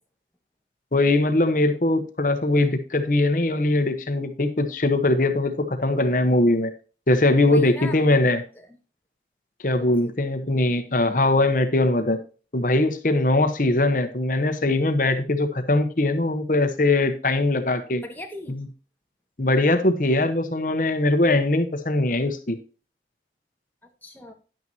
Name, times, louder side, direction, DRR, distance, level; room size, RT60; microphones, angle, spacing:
voice 1, 0.9-6.7 7.1-8.4 9.6-12.2 12.5-18.0 18.5-18.7 19.4-22.6, left 2 dB, 50° left, 8 dB, 1.0 m, -21 dB
voice 2, 7.4-8.7 9.8-10.1 18.0-18.6 24.0-24.3, left 2 dB, 10° left, 2 dB, 1.8 m, -39 dB
11.0 x 9.1 x 2.8 m, 0.36 s
head